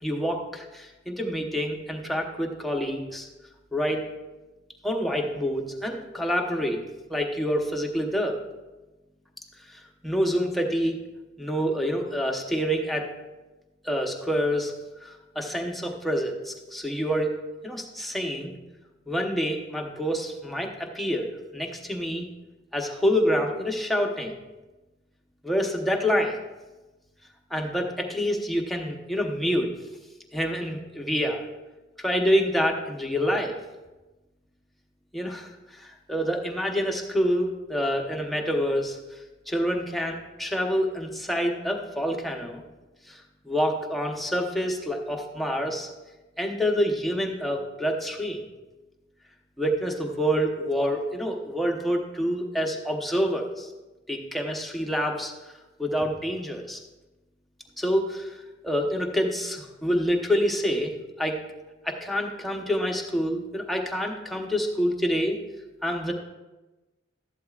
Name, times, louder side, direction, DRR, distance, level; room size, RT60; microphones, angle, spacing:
voice 1, 0.0-3.3 3.7-4.1 4.8-6.8 7.1-8.4 9.7-11.0 11.4-13.1 13.8-14.7 15.0-17.4 17.6-18.5 19.1-22.3 22.7-24.3 25.4-26.4 27.5-29.7 30.3-31.5 32.0-33.6 35.1-39.0 39.5-42.6 43.1-45.9 46.4-48.4 49.6-53.7 54.1-55.3 55.8-56.8 57.8-58.4 58.6-61.4 61.8-65.4 65.8-66.1, equal, ahead, 1 dB, 1.0 m, -27 dB
14.0 x 11.5 x 2.5 m, 1.1 s
head